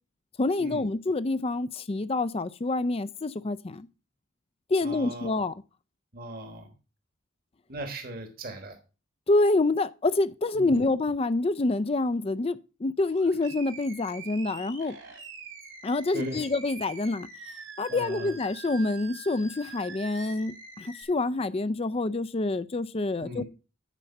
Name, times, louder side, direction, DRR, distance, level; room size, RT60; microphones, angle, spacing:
voice 1, 0.4-3.9 4.7-5.5 9.3-15.0 15.8-17.3 17.8-23.4, left 2 dB, 30° left, 0.4 m, -27 dB
voice 2, 4.8-5.5 6.1-6.7 7.7-8.8 10.5-10.8 16.1-16.5 17.9-18.4 23.2-23.4, right 1 dB, 45° right, 1.4 m, -38 dB
Animal, 13.0-21.0, right 5 dB, 75° right, 3.1 m, -45 dB
9.2 x 5.3 x 5.5 m
head